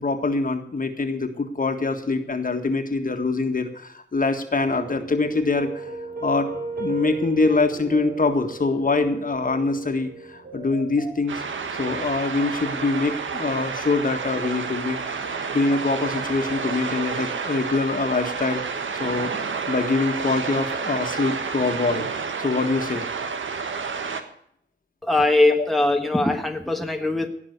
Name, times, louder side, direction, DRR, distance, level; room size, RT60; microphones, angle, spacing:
voice 1, 0.0-5.9 6.2-6.5 6.8-11.4 11.7-18.6 18.9-22.1 22.4-23.1 25.6-25.7, left 3 dB, 45° left, 6 dB, 1.8 m, -24 dB
sound 1, 4.5-11.1, right 4 dB, 50° right, 4.7 m, -35 dB
sound 2, 11.3-24.2, right 5 dB, 80° right, 1.5 m, -30 dB
voice 2, 25.0-27.3, left 2 dB, ahead, 4 dB, 1.4 m, -21 dB
18.0 x 6.2 x 9.5 m, 0.68 s
wide cardioid pair, 95°, 20 cm